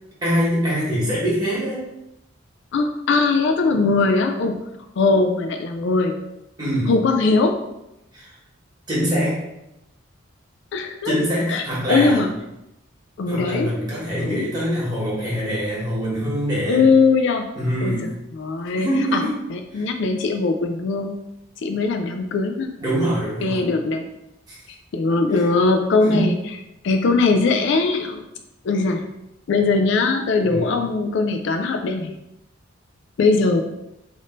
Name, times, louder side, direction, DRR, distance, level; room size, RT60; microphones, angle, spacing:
voice 1, 0.2-1.8 6.6-6.9 8.1-8.3 8.9-9.4 11.0-12.3 13.3-16.8 17.5-18.1 18.8-19.3 19.7-19.9 22.8-23.6 24.5-24.6 25.3-25.4 26.0-26.4 30.4-30.7, equal, 20° right, -7 dB, 1.5 m, -24 dB
voice 2, 2.7-4.6 5.0-6.2 6.9-7.6 10.7-11.1 11.5-12.3 13.2-13.7 14.2-14.5 16.7-17.5 17.8-17.9 18.3-19.2 19.5-21.2 21.6-22.7 23.4-24.1 24.9-26.3 26.8-28.2 28.6-29.1 29.5-32.1 33.2-33.6, left 3 dB, 60° left, 5 dB, 0.3 m, -20 dB
3.5 x 2.6 x 3.8 m, 0.88 s
head